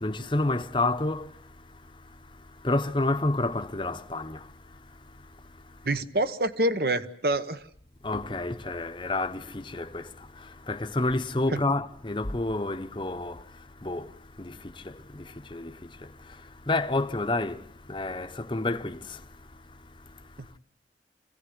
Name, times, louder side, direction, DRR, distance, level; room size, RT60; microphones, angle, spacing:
voice 1, 0.0-1.3 2.6-4.4 8.0-10.0 10.7-13.4 13.8-14.0 14.4-14.5 15.5-15.7 16.7-17.6 17.9-19.0, left 2 dB, 25° left, 0.9 m, -28 dB
voice 2, 5.8-7.6 11.5-11.6, right 1 dB, 55° right, 1.1 m, -26 dB
27.5 x 17.0 x 9.7 m
head